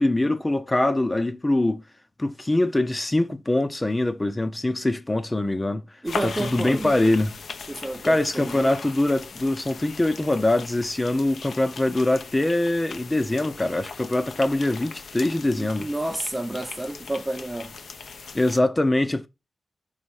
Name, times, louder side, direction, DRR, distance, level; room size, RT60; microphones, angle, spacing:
voice 1, 0.0-1.8 2.2-5.8 6.2-7.3 8.0-15.9 18.3-19.3, left 1 dB, 20° left, 0.8 m, -23 dB
voice 2, 6.0-7.0 7.7-8.8 15.6-17.7, right 1 dB, 15° right, 0.7 m, -30 dB
sound 1, 6.1-18.6, left 5 dB, 75° left, 0.9 m, -39 dB
5.7 x 3.6 x 4.8 m
wide cardioid pair, 100°, 0 cm